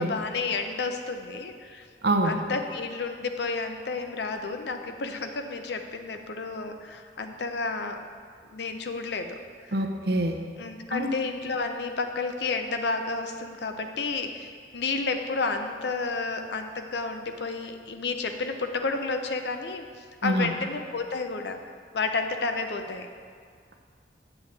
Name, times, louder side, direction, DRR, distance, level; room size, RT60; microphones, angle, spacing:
voice 1, 0.0-1.9 2.2-8.0 8.5-9.4 9.6-9.7 10.6-21.6 21.9-23.1, left 4 dB, 70° left, 6 dB, 0.6 m, -31 dB
voice 2, 2.0-2.4 9.7-10.4 10.9-11.1 20.2-20.5, right 1 dB, 60° right, 3 dB, 0.7 m, -25 dB
7.8 x 7.0 x 4.1 m, 2.1 s
head